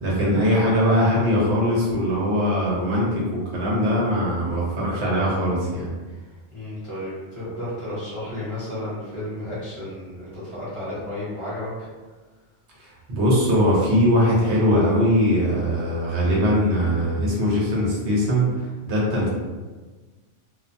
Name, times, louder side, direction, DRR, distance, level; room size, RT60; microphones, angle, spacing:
voice 1, 0.0-5.9 12.8-19.3, equal, 65° right, -5 dB, 1.1 m, -21 dB
voice 2, 6.5-11.7, left 1 dB, 25° right, -11 dB, 1.0 m, -32 dB
2.5 x 2.3 x 2.5 m, 1.3 s
omnidirectional pair, 1.3 m